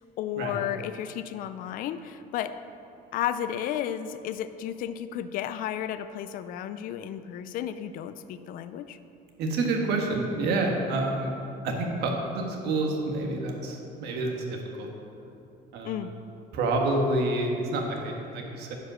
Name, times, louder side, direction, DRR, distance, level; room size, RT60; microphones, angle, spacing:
voice 1, 0.0-2.6 3.1-9.0 15.8-16.1, left 10 dB, 50° left, 12 dB, 0.4 m, -33 dB
voice 2, 9.4-11.3 11.6-14.9 15.7-16.0 16.5-18.7, right 2 dB, 65° right, 1 dB, 1.5 m, -28 dB
9.9 x 5.2 x 6.1 m, 2.8 s
cardioid pair, 155°, 18 cm